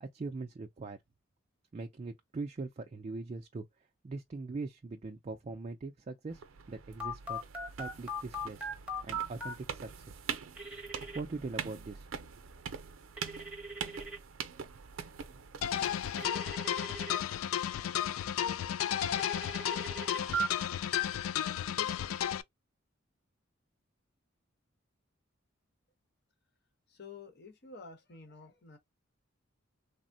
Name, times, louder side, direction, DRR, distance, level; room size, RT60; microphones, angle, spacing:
voice 1, 0.0-1.0 1.7-3.6 4.0-7.4 7.8-8.7 9.0-10.2 11.1-12.1, right 3 dB, 35° right, 0.3 m, -41 dB
sound 1, 6.3-16.2, right 7 dB, 90° right, 0.5 m, -44 dB
Telephone, 7.0-9.5 10.6-11.2 13.2-14.2 16.2-17.2 19.2-20.5, right 2 dB, 5° right, 0.8 m, -38 dB
sound 2, 15.6-22.4, left 10 dB, 85° left, 0.3 m, -33 dB
voice 2, 26.9-28.8, left 4 dB, 55° left, 1.0 m, -50 dB
3.4 x 2.0 x 2.6 m
head